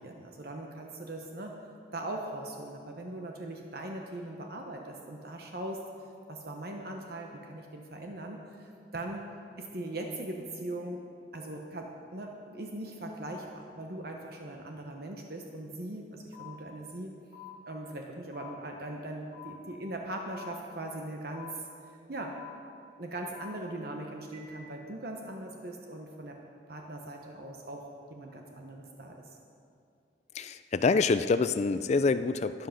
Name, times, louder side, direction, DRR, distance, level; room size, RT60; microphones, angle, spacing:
voice 1, 0.0-1.5 1.9-5.8 6.3-9.2 9.6-11.0 11.3-17.1 17.6-21.5 22.1-22.3 23.0-26.3 26.7-29.2, right 1 dB, 55° right, 1 dB, 1.0 m, -40 dB
sound 1, 16.3-16.5 17.3-17.5 18.3-18.5 19.3-19.5 20.3-20.5 21.3-21.5 22.3-22.5 23.3-23.5 24.3-24.5, left 12 dB, 30° right, 3.4 m, -47 dB
voice 2, 30.3-32.7, left 4 dB, 40° left, 12 dB, 0.3 m, -26 dB
12.5 x 10.5 x 5.8 m, 2.4 s
head